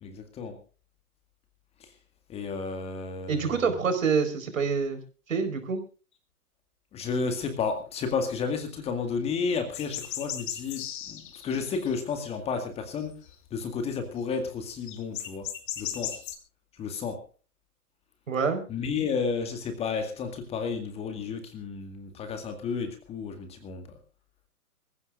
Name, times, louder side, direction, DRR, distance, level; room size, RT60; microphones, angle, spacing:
voice 1, 0.0-0.6 1.8-1.9 2.3-3.7 6.9-13.2 13.5-15.5 15.8-16.2 16.7-17.2 18.7-23.9, left 5 dB, 15° left, 7 dB, 1.9 m, -32 dB
voice 2, 3.3-5.0 5.3-5.8 18.3-18.6, right 5 dB, 60° right, 8 dB, 4.6 m, -26 dB
sound 1, 9.7-12.4 12.7-13.3 14.2-14.3 14.5-14.6 14.9-16.4, left 11 dB, 35° left, 2.6 m, -36 dB
25.0 x 15.5 x 2.5 m, 0.34 s
figure-of-eight pair, 125°, 45 cm